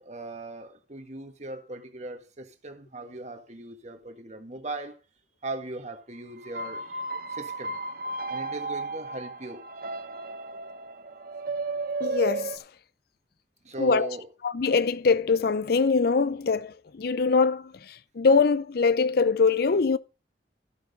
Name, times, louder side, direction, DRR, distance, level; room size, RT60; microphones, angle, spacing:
voice 1, 0.0-5.0 5.4-7.0 7.3-7.8 8.3-9.6 13.6-14.3, right 2 dB, 40° right, 1.6 m, -39 dB
sound 1, 6.4-12.6, right 3 dB, 55° right, 0.8 m, -34 dB
voice 2, 12.0-12.5 13.8-14.1 14.4-17.7 18.2-20.0, left 4 dB, 60° left, 0.5 m, -23 dB
13.0 x 6.3 x 5.1 m
head